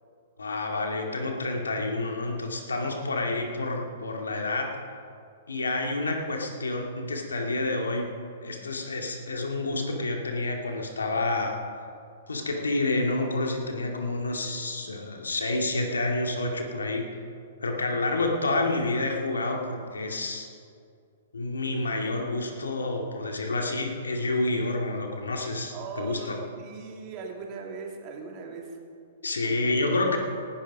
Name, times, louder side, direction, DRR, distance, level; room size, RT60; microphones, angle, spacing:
voice 1, 0.4-4.8 5.5-8.1 8.4-11.6 12.3-17.0 17.6-20.5 21.3-26.4 29.2-30.2, left 2 dB, 90° left, 2 dB, 2.3 m, -29 dB
voice 2, 25.7-28.8 29.4-30.2, right 4 dB, 40° right, 1 dB, 2.7 m, -39 dB
19.0 x 11.0 x 5.4 m, 2.4 s
hypercardioid pair, 125°, 0 cm